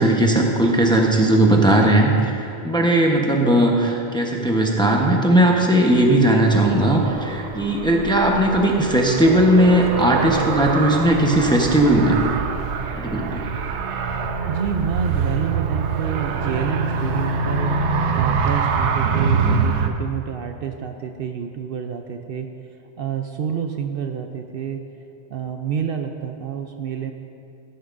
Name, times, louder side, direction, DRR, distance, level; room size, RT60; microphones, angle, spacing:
voice 1, 0.0-12.2 12.9-13.4, right 1 dB, 5° left, 0 dB, 0.8 m, -17 dB
Car, 5.9-19.9, right 5 dB, 85° right, 1.0 m, -25 dB
voice 2, 14.4-17.8 18.1-22.5 23.0-24.8 25.3-27.1, right 7 dB, 65° right, 5 dB, 0.7 m, -28 dB
16.0 x 10.5 x 2.6 m, 2.5 s
omnidirectional pair, 1.1 m